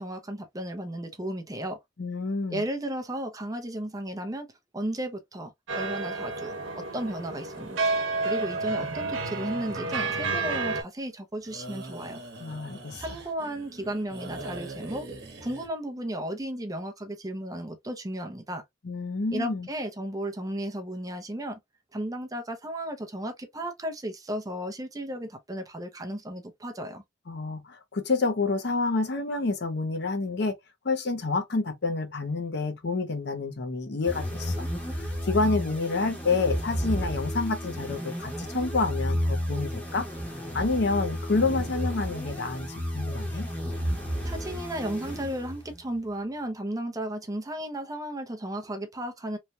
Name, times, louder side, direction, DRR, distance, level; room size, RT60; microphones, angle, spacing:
voice 1, 0.0-1.8 2.5-4.5 4.7-12.2 13.0-15.1 15.4-18.6 19.3-21.6 21.9-27.0 44.2-49.4, right 1 dB, 20° right, 0.6 m, -34 dB
voice 2, 2.0-2.7 12.4-13.0 18.8-19.7 27.3-30.6 30.8-34.7 34.9-40.1 40.5-43.5, left 3 dB, 60° left, 0.6 m, -28 dB
sound 1, 5.7-10.8, right 3 dB, 90° right, 0.9 m, -30 dB
sound 2, 11.4-15.7, right 2 dB, 55° right, 1.0 m, -42 dB
sound 3, 34.0-45.8, equal, 10° left, 0.9 m, -32 dB
3.1 x 2.2 x 2.6 m
head